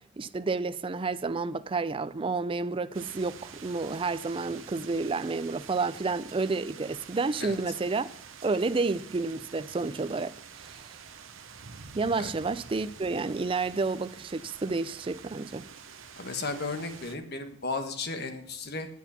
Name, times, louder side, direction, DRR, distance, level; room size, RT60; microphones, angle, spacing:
voice 1, 0.2-8.1 8.4-10.9 11.9-15.6, right 3 dB, 25° right, 0.4 m, -30 dB
sound 1, 2.9-17.1, right 6 dB, 70° right, 0.9 m, -47 dB
voice 2, 16.2-18.9, left 3 dB, 50° left, 1.3 m, -34 dB
9.1 x 8.3 x 5.7 m
head